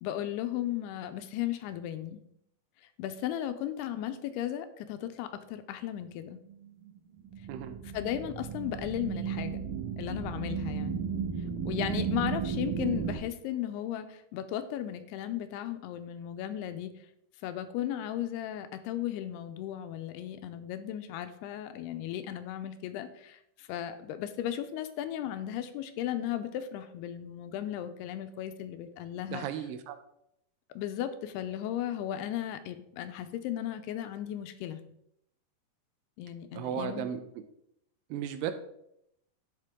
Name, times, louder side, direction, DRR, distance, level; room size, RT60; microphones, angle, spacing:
voice 1, 0.0-2.2 3.0-6.4 7.9-9.6 10.0-11.1 11.7-17.0 17.4-29.5 30.8-34.8 36.2-37.1, left 11 dB, 85° left, 10 dB, 2.6 m, -36 dB
sound 1, 6.5-13.2, right 7 dB, 60° right, 2.4 m, -34 dB
voice 2, 7.5-7.8 29.3-30.0 36.5-37.4 38.1-38.5, right 9 dB, 85° right, 9 dB, 2.6 m, -35 dB
11.0 x 4.5 x 3.6 m, 0.77 s
omnidirectional pair, 4.7 m